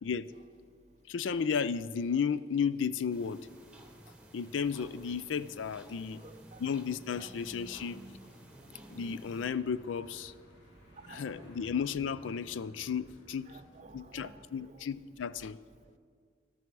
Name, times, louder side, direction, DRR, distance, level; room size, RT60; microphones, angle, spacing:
voice 1, 1.1-3.4 4.3-6.2 6.6-8.0 8.9-10.3 11.1-13.5 13.9-15.6, left 6 dB, 75° left, 16 dB, 0.4 m, -33 dB
sound 1, 3.1-9.5, right 1 dB, 5° right, 1.1 m, -53 dB
voice 2, 6.2-6.6 7.2-7.3 11.1-11.3 13.5-14.4, right 3 dB, 35° right, 10 dB, 0.5 m, -52 dB
sound 2, 9.5-14.6, equal, 60° left, 3.6 m, -57 dB
13.0 x 12.5 x 4.7 m, 2.1 s
head